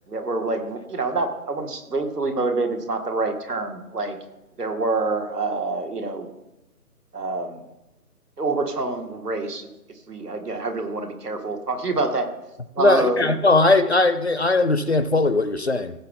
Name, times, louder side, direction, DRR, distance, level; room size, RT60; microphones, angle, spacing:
voice 1, 0.1-4.2 4.6-6.3 7.1-7.6 8.4-9.7 10.1-12.3 12.8-13.3, right 3 dB, 80° right, 5 dB, 2.2 m, -26 dB
voice 2, 12.8-15.9, left 2 dB, 45° left, 12 dB, 0.6 m, -19 dB
16.5 x 7.3 x 3.8 m, 0.95 s
figure-of-eight pair, 175°, 46 cm